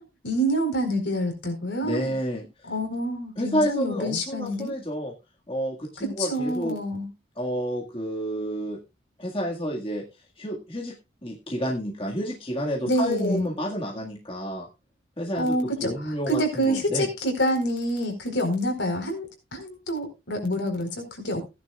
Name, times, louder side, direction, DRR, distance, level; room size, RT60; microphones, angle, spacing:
voice 1, 0.2-2.1 2.6-4.7 6.2-7.1 12.8-13.5 15.4-21.4, equal, 70° left, 4 dB, 4.4 m, -27 dB
voice 2, 1.8-2.7 3.4-5.1 5.5-6.7 7.4-8.8 9.2-10.0 10.4-10.9 11.2-14.7 15.2-17.1, equal, 30° left, -1 dB, 1.9 m, -29 dB
16.5 x 10.5 x 2.4 m, 0.26 s
head